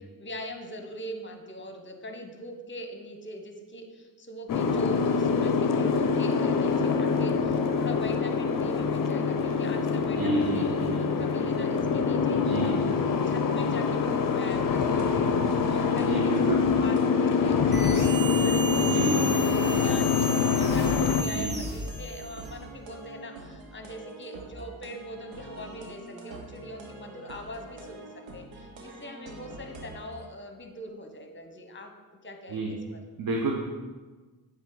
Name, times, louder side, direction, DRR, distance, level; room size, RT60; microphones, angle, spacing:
voice 1, 0.2-12.9 13.3-31.9 32.2-33.0, equal, 25° left, 5 dB, 1.1 m, -42 dB
Boat Water vehicle, 4.5-21.2, left 5 dB, 45° left, 0.6 m, -25 dB
voice 2, 10.2-11.1 12.4-12.8 16.1-16.6 18.9-19.2 21.3-21.6 32.5-32.7 33.2-33.6, right 2 dB, 50° right, 1 dB, 0.9 m, -29 dB
sound 1, 14.5-30.2, right 2 dB, 90° right, 0.9 m, -45 dB
sound 2, 17.7-22.6, right 2 dB, 25° right, 1.3 m, -35 dB
7.9 x 3.5 x 3.9 m, 1.3 s
supercardioid pair, 55°, 45 cm